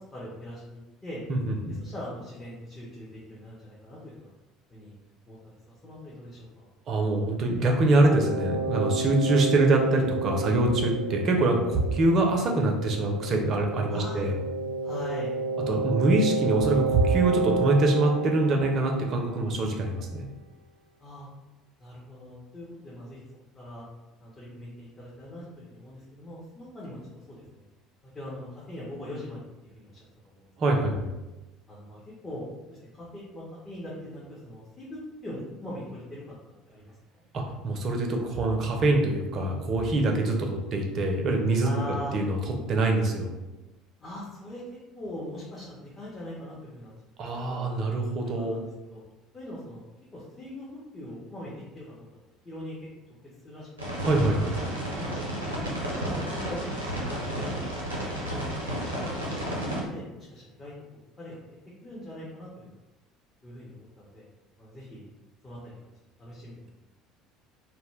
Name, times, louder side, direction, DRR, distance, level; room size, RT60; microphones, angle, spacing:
voice 1, 0.1-1.2 1.7-4.3 4.7-4.9 5.3-5.4 5.7-6.7 13.9-14.2 14.8-15.4 21.0-21.3 21.8-23.2 23.6-23.9 24.2-27.6 28.0-30.5 31.7-36.2 36.7-37.2 41.6-42.2 44.0-44.6 44.9-46.9 47.3-47.7 48.2-49.0 49.3-49.8 50.1-51.9 52.4-52.8 53.4-53.7 54.9-57.5 57.9-60.7 61.2-61.4 61.8-62.8 63.4-64.2 64.6-65.1 65.4-65.7 66.2-66.7, left 1 dB, 25° left, -7 dB, 0.7 m, -41 dB
voice 2, 1.3-1.7 6.9-14.3 15.7-20.2 30.6-31.1 37.3-41.7 42.1-42.4 42.7-43.3 47.2-48.6 54.0-54.5, right 2 dB, 45° right, 1 dB, 0.4 m, -24 dB
sound 1, 8.0-19.7, right 3 dB, 80° left, 0.4 m, -31 dB
sound 2, 53.8-59.8, equal, 85° right, 0.6 m, -32 dB
2.1 x 2.0 x 3.1 m, 1.1 s
figure-of-eight pair, 60°, 0 cm